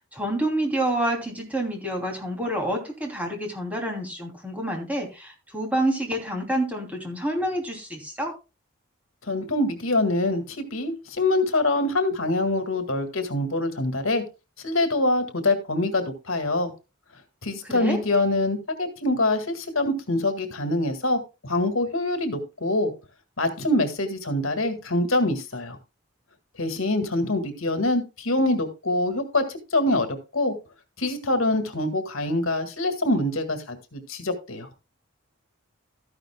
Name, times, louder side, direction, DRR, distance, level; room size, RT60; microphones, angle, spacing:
voice 1, 0.1-8.3 17.7-18.0, right 1 dB, 5° right, 1 dB, 2.9 m, -28 dB
voice 2, 9.3-14.2 14.6-16.7 17.4-22.9 23.4-25.8 26.6-30.1 30.3-30.5 31.0-34.7, left 2 dB, 75° left, 8 dB, 1.9 m, -25 dB
13.0 x 11.0 x 2.3 m, 0.28 s
head